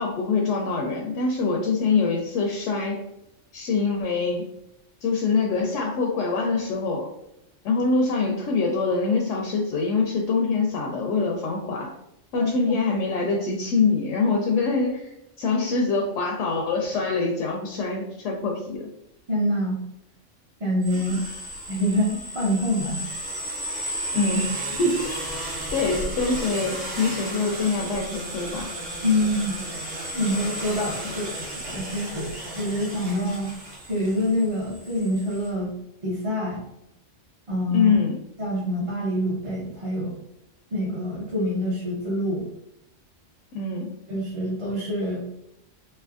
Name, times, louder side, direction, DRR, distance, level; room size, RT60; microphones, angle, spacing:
voice 1, 0.0-3.0 3.5-4.5 5.0-7.1 7.6-11.9 12.3-18.9 21.0-21.2 24.1-25.1 25.7-28.7 37.7-38.2 43.5-43.9, left 4 dB, 75° left, 1 dB, 0.9 m, -24 dB
voice 2, 19.3-19.8 20.6-21.2 21.7-23.0 29.0-29.6 30.1-33.5 33.9-35.7 36.0-36.6 37.5-37.9 38.4-40.1 40.7-42.4 44.1-45.2, left 1 dB, 35° right, -6 dB, 0.6 m, -26 dB
sound 1, 20.8-35.5, right 1 dB, 55° right, 1.2 m, -34 dB
3.3 x 2.7 x 2.4 m, 0.83 s
omnidirectional pair, 1.3 m